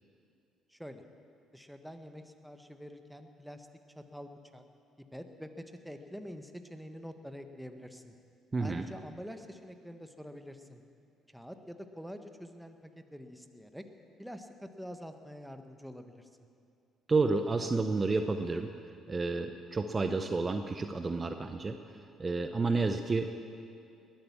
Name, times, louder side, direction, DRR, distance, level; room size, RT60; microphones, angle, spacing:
voice 1, 0.7-1.0 1.5-3.7 3.9-4.6 5.1-8.1 8.6-10.8 11.3-13.8 14.2-16.3, equal, ahead, 7 dB, 1.4 m, -46 dB
voice 2, 8.5-8.8 17.1-18.7 19.1-21.8 22.2-23.3, right 3 dB, 30° right, 7 dB, 0.8 m, -30 dB
20.5 x 8.9 x 7.3 m, 2.4 s
hypercardioid pair, 50°, 0 cm